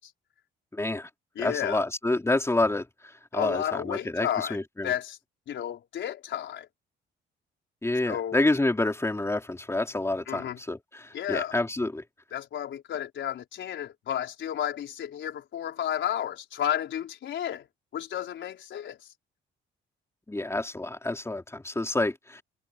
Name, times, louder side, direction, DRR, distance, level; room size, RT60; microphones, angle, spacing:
voice 1, 0.7-1.1 1.4-4.9 7.8-12.0 20.3-22.4, left 2 dB, 15° left, 3.3 m, -28 dB
voice 2, 1.3-1.8 3.3-4.6 4.8-5.2 5.5-6.7 8.1-8.4 10.3-10.6 11.1-11.5 12.3-17.7 17.9-19.0, left 10 dB, 70° left, 4.7 m, -32 dB
cardioid pair, 90°, 20 cm